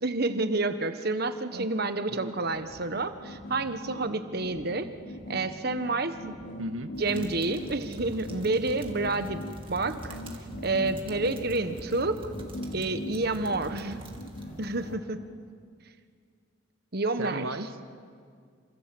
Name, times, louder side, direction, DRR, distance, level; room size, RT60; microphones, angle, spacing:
voice 1, 0.0-4.9 5.3-6.4 7.0-10.2 10.6-12.2 12.7-14.0 14.6-15.2 16.9-17.7, right 2 dB, 50° right, 10 dB, 1.3 m, -29 dB
sound 1, 2.5-15.0, left 1 dB, 65° left, 3.0 m, -40 dB
voice 2, 6.6-6.9 13.7-14.0 17.2-17.9, right 1 dB, 85° right, 8 dB, 1.7 m, -36 dB
sound 2, 6.9-14.9, equal, 25° right, 2.4 m, -45 dB
28.5 x 26.5 x 7.8 m, 2.1 s
head